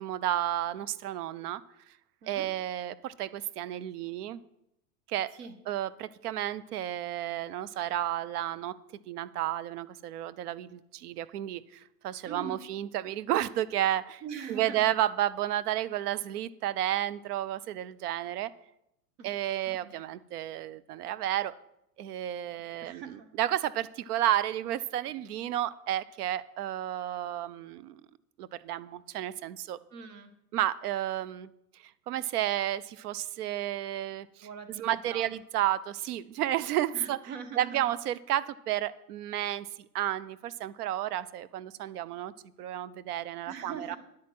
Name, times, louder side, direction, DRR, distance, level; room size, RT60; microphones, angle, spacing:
voice 1, 0.0-1.6 2.3-4.4 5.1-5.3 5.7-8.8 9.1-14.2 14.5-18.5 19.2-21.5 22.0-28.0 28.4-29.8 30.5-31.5 31.8-37.2 37.6-39.7 39.9-42.3 42.6-44.0, right 12 dB, 70° right, 16 dB, 0.7 m, -32 dB
voice 2, 12.3-12.6 14.2-14.8 19.2-19.3 19.8-19.9 22.8-23.3 29.9-30.3 34.4-35.3 36.9-37.8 43.5-44.0, right 6 dB, 50° right, 8 dB, 1.8 m, -42 dB
10.0 x 8.4 x 6.0 m, 0.81 s
hypercardioid pair, 100°, 48 cm